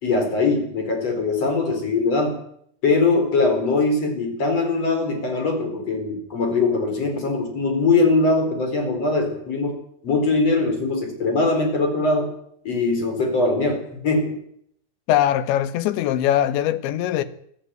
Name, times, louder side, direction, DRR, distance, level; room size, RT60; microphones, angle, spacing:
voice 1, 0.0-2.4 2.8-9.8 10.0-12.3 12.7-14.4, left 3 dB, 30° left, 5.2 m, -21 dB
voice 2, 15.1-17.2, left 12 dB, 75° left, 3.3 m, -21 dB
22.0 x 13.5 x 9.1 m
omnidirectional pair, 5.8 m